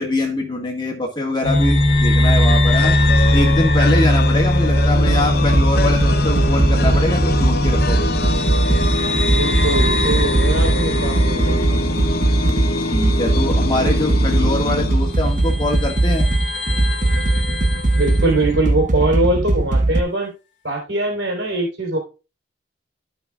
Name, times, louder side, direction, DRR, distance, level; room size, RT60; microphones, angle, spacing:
voice 1, 0.0-3.0 3.3-8.0 12.9-16.3, left 1 dB, 25° left, 0 dB, 1.7 m, -23 dB
sound 1, 1.4-13.4 13.7-13.8 14.8-14.9 15.4-18.5, left 1 dB, 85° left, 1.7 m, -20 dB
sound 2, 2.7-15.7, left 2 dB, 55° left, 0.7 m, -25 dB
sound 3, 5.1-20.0, right 2 dB, 45° right, 0.8 m, -19 dB
voice 2, 9.3-11.8 18.0-20.3 20.6-22.0, right 2 dB, 80° right, 0 dB, 3.7 m, -22 dB
14.5 x 5.3 x 2.4 m, 0.31 s
head